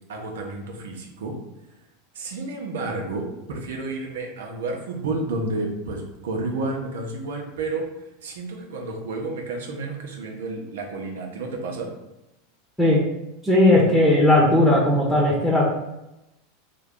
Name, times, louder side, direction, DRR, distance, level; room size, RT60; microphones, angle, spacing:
voice 1, 0.1-1.3 2.1-7.9 8.2-11.9, right 2 dB, 85° right, 2 dB, 0.8 m, -31 dB
voice 2, 13.4-15.6, left 1 dB, 5° left, -5 dB, 0.9 m, -17 dB
3.7 x 2.3 x 3.6 m, 0.91 s
supercardioid pair, 115°, 0 cm